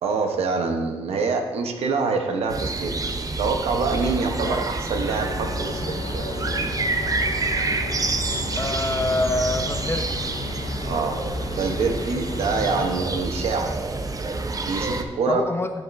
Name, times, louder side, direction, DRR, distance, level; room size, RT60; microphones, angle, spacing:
voice 1, 0.0-2.9 3.4-6.7 10.8-11.2 11.6-13.7 14.7-15.4, right 4 dB, 90° right, 4 dB, 0.9 m, -25 dB
sound 1, 2.5-15.0, right 3 dB, 35° right, 0.7 m, -28 dB
sound 2, 4.9-13.3, left 6 dB, 70° left, 0.5 m, -36 dB
voice 2, 8.6-10.2 15.3-15.7, left 2 dB, 25° left, 6 dB, 0.9 m, -26 dB
10.5 x 10.5 x 2.6 m, 1.4 s
cardioid pair, 65°, 10 cm